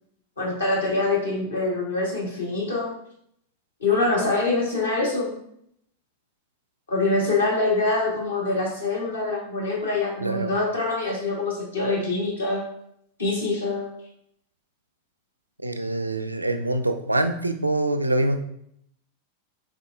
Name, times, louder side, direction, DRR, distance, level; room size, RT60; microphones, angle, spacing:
voice 1, 0.4-2.9 3.8-5.3 6.9-12.6 13.2-13.9, left 3 dB, 70° left, -4 dB, 1.5 m, -24 dB
voice 2, 15.6-18.4, right 1 dB, 85° right, 8 dB, 0.3 m, -24 dB
4.2 x 4.0 x 2.5 m, 0.72 s
figure-of-eight pair, 90°, 0 cm